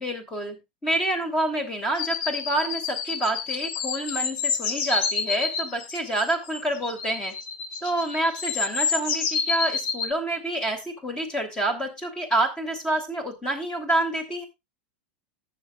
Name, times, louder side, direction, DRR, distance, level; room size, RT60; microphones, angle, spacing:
voice 1, 0.0-7.3 7.8-14.5, right 1 dB, 15° left, 6 dB, 3.0 m, -28 dB
sound 1, 2.0-10.1, left 6 dB, 50° left, 1.6 m, -29 dB
19.0 x 7.0 x 2.4 m, 0.23 s
supercardioid pair, 140°, 5 cm